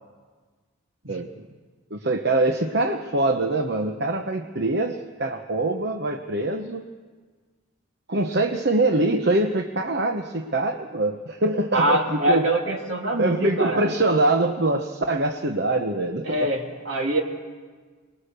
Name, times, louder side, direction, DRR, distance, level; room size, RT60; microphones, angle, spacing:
voice 1, 1.1-1.5 1.9-6.9 8.1-12.5 13.2-16.5, right 2 dB, 50° right, 5 dB, 0.9 m, -24 dB
voice 2, 11.7-13.8 16.2-17.2, right 1 dB, 70° right, 1 dB, 2.9 m, -24 dB
24.0 x 20.0 x 6.7 m, 1.5 s
head